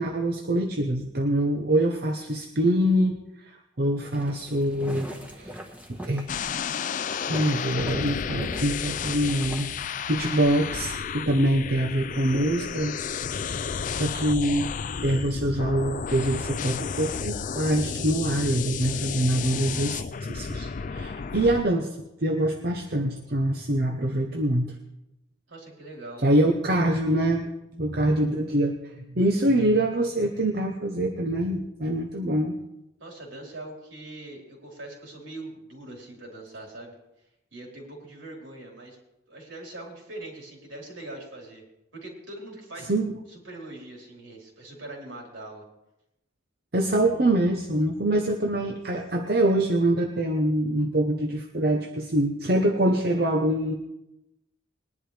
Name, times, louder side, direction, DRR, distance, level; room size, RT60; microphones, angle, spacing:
voice 1, 0.0-3.2 3.4-3.5 3.8-5.5 6.0-6.3 7.3-9.7 10.0-12.9 14.0-14.7 15.0-20.0 20.3-21.9 22.2-24.7 26.2-27.5 27.8-32.5 42.9-43.1 46.7-53.7, right 1 dB, 50° right, 3 dB, 0.9 m, -24 dB
sound 1, 4.1-10.1, equal, 5° right, 1.3 m, -42 dB
sound 2, 6.3-21.6, left 6 dB, 40° left, 0.3 m, -32 dB
voice 2, 12.0-12.8 25.5-26.4 33.0-37.0 37.5-39.0 39.3-41.6 42.0-42.9 43.3-45.6, right 2 dB, 70° right, -1 dB, 4.1 m, -42 dB
21.0 x 11.0 x 3.4 m, 0.89 s
head